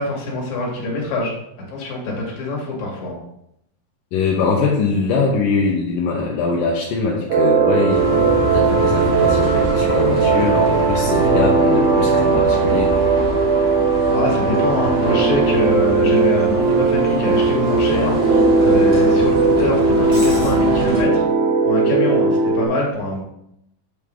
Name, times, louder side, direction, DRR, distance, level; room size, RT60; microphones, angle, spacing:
voice 1, 0.0-1.4 1.7-3.2 14.1-21.2 21.6-23.2, left 2 dB, 60° left, -2 dB, 3.1 m, -24 dB
voice 2, 4.1-12.9, left 4 dB, 85° left, -2 dB, 2.6 m, -22 dB
sound 1, 7.3-22.7, right 4 dB, 70° right, 2.4 m, -17 dB
Bus, 7.9-21.0, equal, 15° right, 1.3 m, -27 dB
8.2 x 5.0 x 3.7 m, 0.77 s
omnidirectional pair, 3.8 m